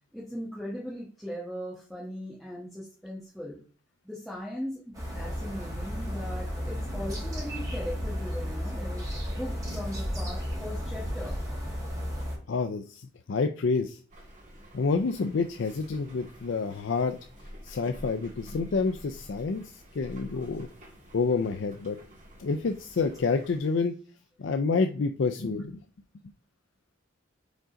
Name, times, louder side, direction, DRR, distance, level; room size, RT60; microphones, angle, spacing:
voice 1, 0.1-3.6 4.0-11.4, equal, ahead, -7 dB, 1.3 m, -39 dB
sound 1, 4.9-12.4, equal, 15° right, 1.9 m, -33 dB
voice 2, 12.5-14.0 14.7-17.2 17.6-20.7 21.1-22.0 22.4-23.9 24.4-25.8, left 4 dB, 70° left, 7 dB, 0.4 m, -28 dB
sound 2, 14.1-23.6, equal, 40° right, 2.2 m, -49 dB
5.1 x 3.7 x 5.0 m, 0.40 s
head